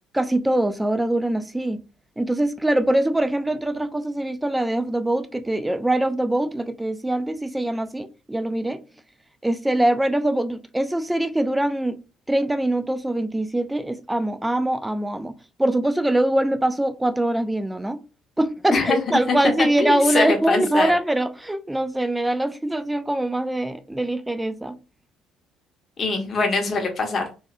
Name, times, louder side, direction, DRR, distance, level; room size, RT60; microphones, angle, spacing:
voice 1, 0.1-1.8 2.2-8.8 9.4-12.0 12.3-15.3 15.6-18.0 18.4-24.8, right 1 dB, 10° right, 0.3 m, -23 dB
voice 2, 19.8-20.9 26.0-27.2, left 3 dB, 40° left, 0.6 m, -22 dB
2.9 x 2.2 x 2.2 m
figure-of-eight pair, 50°, 0 cm